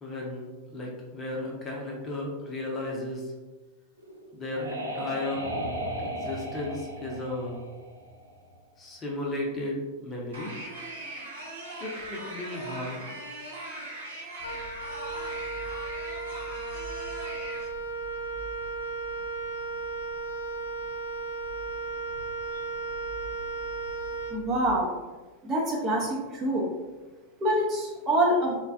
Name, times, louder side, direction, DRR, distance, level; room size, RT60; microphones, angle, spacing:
voice 1, 0.0-3.3 4.3-5.4 6.0-7.6 8.8-10.5 11.8-13.0, left 2 dB, 25° left, -2 dB, 0.7 m, -34 dB
sound 1, 4.0-8.6, right 1 dB, 85° right, 0.5 m, -36 dB
sound 2, 10.3-17.6, right 2 dB, 70° right, 0.9 m, -40 dB
Wind instrument woodwind instrument, 14.4-24.8, right 3 dB, 75° left, 0.4 m, -35 dB
voice 2, 24.3-25.0 25.4-26.7 27.4-28.6, right 1 dB, 25° right, -2 dB, 0.7 m, -26 dB
3.9 x 2.2 x 2.5 m, 1.2 s
figure-of-eight pair, 90°, 0 cm